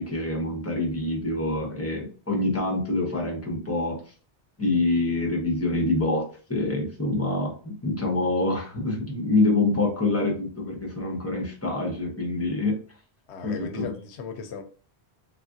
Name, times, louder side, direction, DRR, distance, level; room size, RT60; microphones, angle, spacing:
voice 1, 0.0-4.0 4.6-12.8 13.4-13.9, left 2 dB, 15° left, 0.7 m, -26 dB
voice 2, 13.3-14.6, left 5 dB, 80° left, 0.8 m, -37 dB
3.5 x 2.4 x 2.5 m
omnidirectional pair, 1.1 m